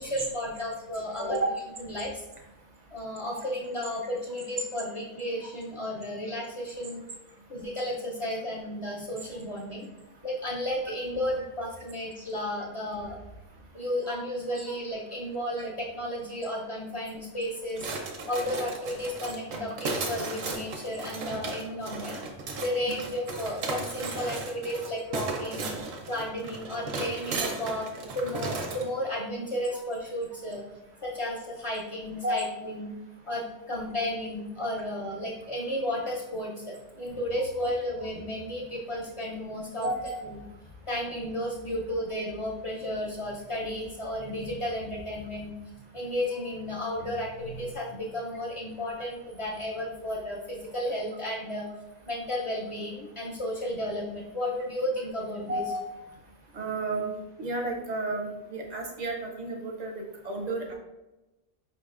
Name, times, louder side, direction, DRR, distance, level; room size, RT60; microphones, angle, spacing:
voice 1, 0.0-1.4 1.8-2.2 2.9-7.0 7.5-9.9 10.2-13.2 13.7-17.9 18.3-22.2 22.6-25.7 26.1-27.9 28.1-30.6 31.0-32.9 33.3-39.9 40.3-40.5 40.9-45.5 45.9-51.7 52.1-55.6, left 1 dB, 55° left, -4 dB, 0.3 m, -33 dB
sound 1, 17.8-28.9, right 3 dB, 85° right, 1.1 m, -35 dB
voice 2, 39.8-40.2 55.4-55.9 56.5-57.1 57.4-60.8, right 2 dB, 50° right, 2 dB, 0.5 m, -32 dB
4.7 x 3.8 x 2.4 m, 1.0 s
omnidirectional pair, 1.3 m